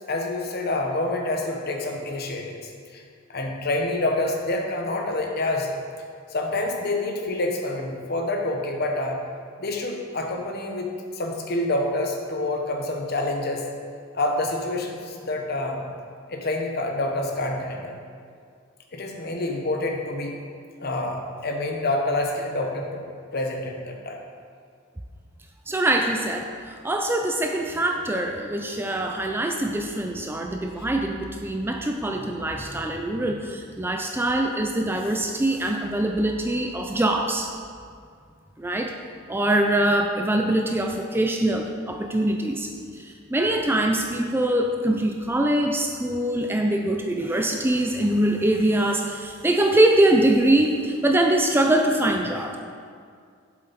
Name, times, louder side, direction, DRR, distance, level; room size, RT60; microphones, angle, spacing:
voice 1, 0.1-3.0 3.3-5.8 6.3-9.2 9.6-13.6 14.1-15.8 16.3-17.9 18.9-20.4 20.8-23.0 23.3-24.2, left 2 dB, 50° left, 2 dB, 1.0 m, -27 dB
voice 2, 25.7-37.5 38.6-38.9 39.3-52.6, right 1 dB, 10° right, 3 dB, 0.4 m, -23 dB
7.7 x 7.5 x 4.1 m, 2.2 s
head